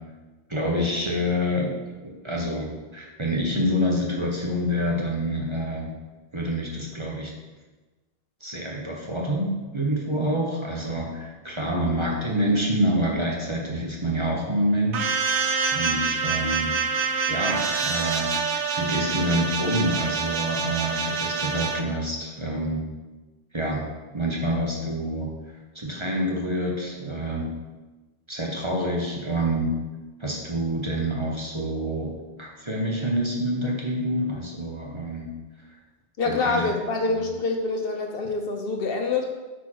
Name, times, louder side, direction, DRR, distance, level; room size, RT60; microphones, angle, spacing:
voice 1, 0.5-5.9 6.3-7.3 8.4-18.3 18.7-22.8 23.5-23.9 24.1-27.5 28.3-29.7 30.2-32.1 32.4-35.3 36.3-36.7 37.1-37.2, equal, 25° right, -1 dB, 1.0 m, -27 dB
sound 1, 14.9-21.8, right 5 dB, 75° right, 0.9 m, -26 dB
voice 2, 36.2-39.2, left 3 dB, 60° left, 3 dB, 0.9 m, -26 dB
8.0 x 4.7 x 4.5 m, 1.2 s
omnidirectional pair, 1.2 m